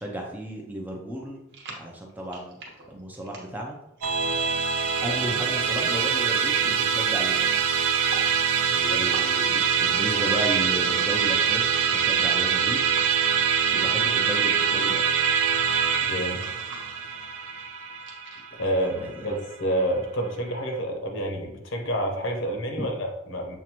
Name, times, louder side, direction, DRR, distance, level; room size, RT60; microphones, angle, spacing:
voice 1, 0.0-1.4 1.8-2.6 2.9-3.8 5.0-7.5 8.7-12.8 13.7-15.0 18.7-19.3 22.8-22.9, right 1 dB, 10° right, 0 dB, 0.5 m, -34 dB
sound 1, 1.5-13.7 14.0-18.7, right 2 dB, 50° right, 1.0 m, -46 dB
Musical instrument, 4.0-19.5, right 7 dB, 80° right, 0.4 m, -24 dB
voice 2, 16.1-16.5 18.6-23.6, equal, 65° left, 2 dB, 0.8 m, -28 dB
7.1 x 2.5 x 2.9 m, 0.87 s
head